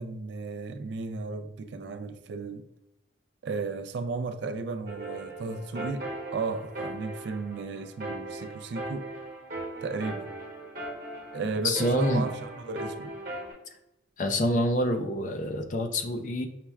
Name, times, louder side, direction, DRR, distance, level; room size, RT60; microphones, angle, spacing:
voice 1, 0.0-2.7 3.4-9.1 9.8-10.3 11.3-13.1, right 4 dB, 65° right, 0.3 m, -34 dB
sound 1, 4.9-13.5, right 1 dB, 45° right, 1.0 m, -39 dB
voice 2, 11.6-12.3 14.2-16.5, left 1 dB, 40° left, 0.4 m, -27 dB
5.7 x 2.1 x 2.3 m
head